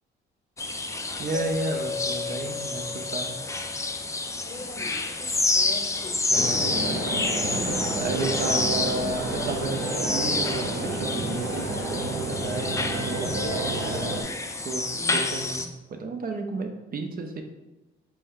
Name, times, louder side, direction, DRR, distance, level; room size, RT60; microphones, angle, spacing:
sound 1, 0.6-15.7, left 3 dB, 15° left, 0.3 m, -29 dB
voice 1, 1.2-3.4 8.0-14.1 14.6-17.4, right 3 dB, 45° right, 4 dB, 0.5 m, -32 dB
Mallet percussion, 1.3-4.3, left 6 dB, 80° left, 0.7 m, -36 dB
voice 2, 4.5-6.2 6.6-7.5 14.9-15.7, left 2 dB, 30° left, 3 dB, 0.7 m, -41 dB
sound 2, 6.3-14.2, right 2 dB, 65° right, 0.9 m, -30 dB
4.3 x 2.6 x 3.7 m, 1.1 s
cardioid pair, 90°, 20 cm